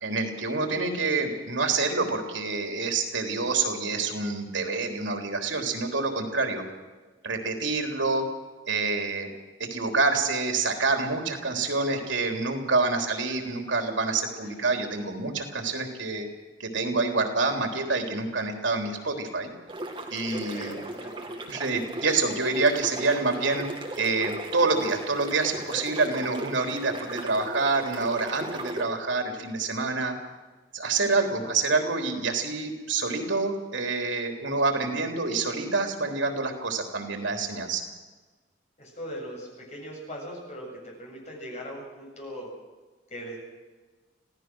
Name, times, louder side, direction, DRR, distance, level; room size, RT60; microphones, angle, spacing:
voice 1, 0.0-6.6 7.2-8.2 8.7-9.3 9.6-16.3 16.6-19.5 20.1-20.8 21.5-23.7 24.0-30.1 30.7-37.8, right 3 dB, 85° right, 4 dB, 3.6 m, -27 dB
voice 2, 12.8-13.2 14.4-14.7 20.3-21.4 38.8-42.5 43.1-43.4, equal, 35° left, -1 dB, 7.5 m, -40 dB
sound 1, 19.7-28.9, right 1 dB, 25° right, 2.3 m, -37 dB
26.0 x 16.5 x 6.3 m, 1.3 s
head